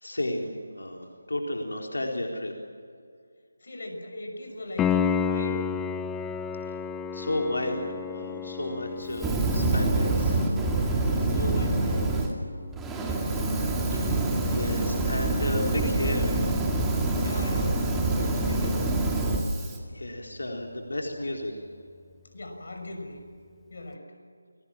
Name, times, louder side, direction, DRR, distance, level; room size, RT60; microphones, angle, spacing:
voice 1, 0.0-2.5 6.7-6.8 7.1-10.4 13.9-16.4 19.9-21.6, left 1 dB, 75° left, 1 dB, 4.0 m, -32 dB
voice 2, 3.6-5.6 10.9-12.0 17.2-18.8 22.3-23.2 23.7-24.1, left 1 dB, 60° left, 4 dB, 6.3 m, -38 dB
Piano, 4.8-15.4 18.7-18.8, left 7 dB, 10° left, 0.6 m, -33 dB
Fire, 9.1-12.3 12.7-19.8, right 2 dB, 5° right, 2.4 m, -26 dB
29.0 x 21.5 x 7.5 m, 2.3 s
figure-of-eight pair, 160°, 0 cm